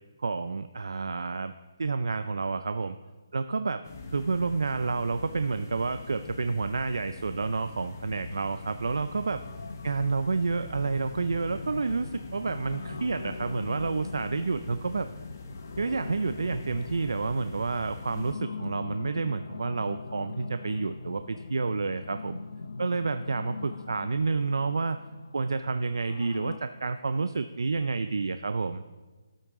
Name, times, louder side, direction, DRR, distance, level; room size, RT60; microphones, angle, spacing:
voice 1, 0.2-1.5 1.8-3.0 3.3-3.8 4.1-9.4 9.8-15.1 15.8-22.4 22.8-25.0 25.3-28.8, right 4 dB, 80° right, 10 dB, 0.4 m, -29 dB
sound 1, 3.8-18.3, left 3 dB, 40° left, 0.8 m, -43 dB
sound 2, 9.4-26.6, left 4 dB, 70° left, 0.6 m, -41 dB
12.0 x 8.4 x 3.6 m, 1.3 s
hypercardioid pair, 170°, 2 cm